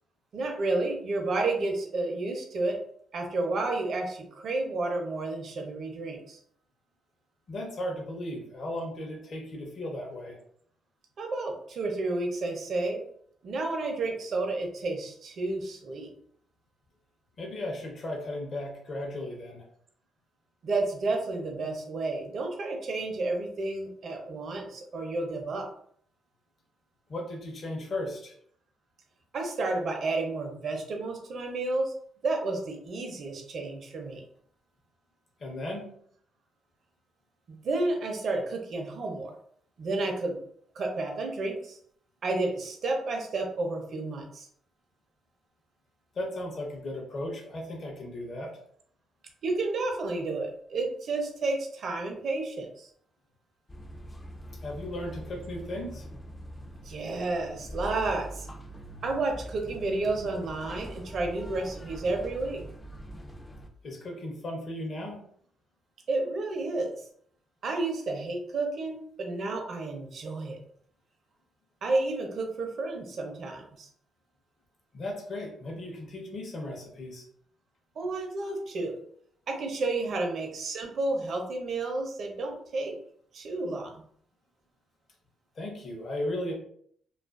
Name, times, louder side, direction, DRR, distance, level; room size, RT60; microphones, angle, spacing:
voice 1, 0.3-2.8 3.1-6.4 11.2-13.0 13.4-16.1 20.6-25.7 29.3-31.9 32.2-34.2 37.5-39.4 39.8-40.4 40.7-41.8 42.2-44.5 49.4-52.9 56.8-58.5 59.0-62.6 66.1-66.9 67.6-70.6 71.8-73.9 78.0-79.0 79.5-82.9 83.3-84.0, right 2 dB, 55° right, 2 dB, 0.6 m, -31 dB
voice 2, 7.5-10.4 17.4-19.6 27.1-28.3 35.4-35.8 46.1-48.6 54.6-56.1 63.8-65.2 74.9-77.2 85.5-86.5, left 1 dB, 50° left, -1 dB, 0.7 m, -36 dB
sound 1, 53.7-63.7, equal, 20° left, 0.4 m, -43 dB
2.4 x 2.4 x 2.3 m, 0.64 s
cardioid pair, 90°, 0 cm